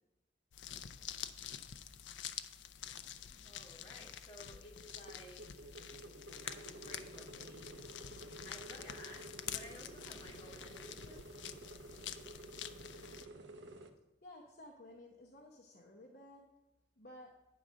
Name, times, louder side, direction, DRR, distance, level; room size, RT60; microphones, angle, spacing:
sound 1, 0.5-13.3, left 9 dB, 85° left, 0.5 m, -48 dB
voice 1, 3.4-5.7 6.4-7.8 8.4-11.3, left 1 dB, 30° left, -3 dB, 1.9 m, -55 dB
sound 2, 4.8-13.9, right 1 dB, 80° right, 0.8 m, -52 dB
voice 2, 14.2-16.5 17.0-17.3, left 1 dB, 55° left, -1 dB, 0.8 m, -55 dB
9.4 x 3.9 x 6.2 m, 0.94 s
head